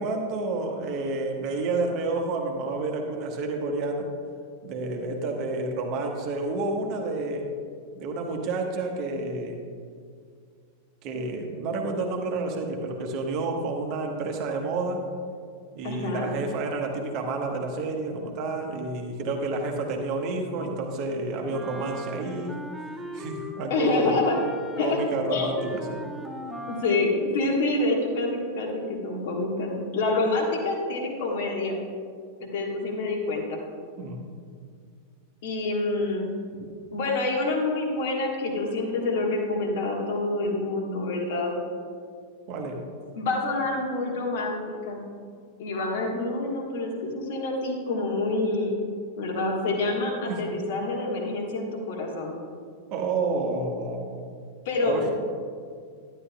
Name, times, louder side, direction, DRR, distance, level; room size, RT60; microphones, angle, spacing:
voice 1, 0.0-4.1 4.6-7.5 7.9-9.6 11.0-15.0 15.7-22.5 23.1-24.2 24.8-26.0 34.0-34.2 42.5-42.8 50.3-50.6 52.9-54.3 54.8-55.1, right 3 dB, 40° right, 2 dB, 1.1 m, -30 dB
voice 2, 15.8-16.3 23.7-24.4 24.7-25.0 25.3-25.5 26.7-31.8 32.4-33.6 35.4-36.3 36.9-41.5 43.1-45.0 45.6-48.8 49.2-52.4 54.6-55.1, left 2 dB, 55° left, 1 dB, 1.4 m, -27 dB
Wind instrument woodwind instrument, 21.5-23.7 24.0-27.1, equal, 5° left, 0.7 m, -38 dB
11.5 x 10.0 x 2.3 m, 2.1 s
figure-of-eight pair, 90°, 0 cm